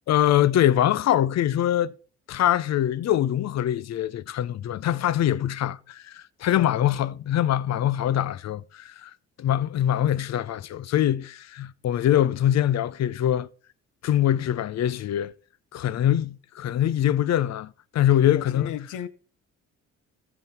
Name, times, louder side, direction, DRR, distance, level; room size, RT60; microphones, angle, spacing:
voice 1, 0.1-1.9 2.3-9.1 9.4-13.5 14.0-15.3 15.7-18.7, left 11 dB, 60° left, 0.6 m, -23 dB
voice 2, 18.2-19.1, left 10 dB, 80° left, 0.9 m, -35 dB
14.5 x 6.0 x 4.3 m
cardioid pair, 90°, 30 cm